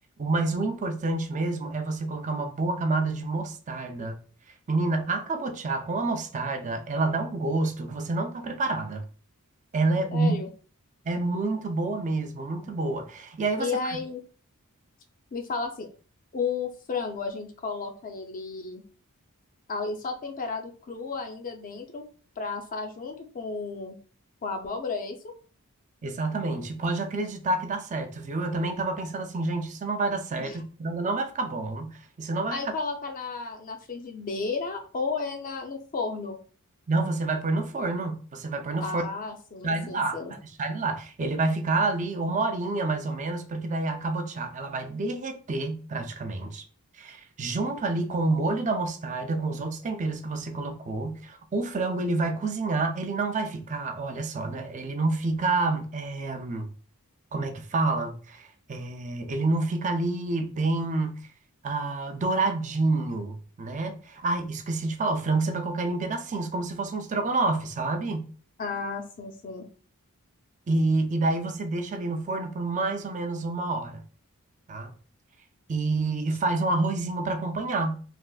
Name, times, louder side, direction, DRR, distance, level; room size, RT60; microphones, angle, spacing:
voice 1, 0.2-4.2 4.7-9.0 9.7-10.4 11.1-14.0 26.0-32.6 36.9-39.0 39.6-46.6 47.0-56.7 57.3-61.3 61.6-68.3 70.7-74.0 74.7-74.9 75.7-78.0, right 3 dB, 35° right, 0.4 m, -28 dB
voice 2, 10.1-10.5 13.6-14.2 15.3-15.9 16.3-18.8 19.7-22.0 22.4-24.0 24.4-25.3 30.4-30.6 32.5-36.4 38.8-40.3 68.6-69.7, left 4 dB, 40° left, 0.4 m, -33 dB
3.4 x 2.5 x 2.3 m
head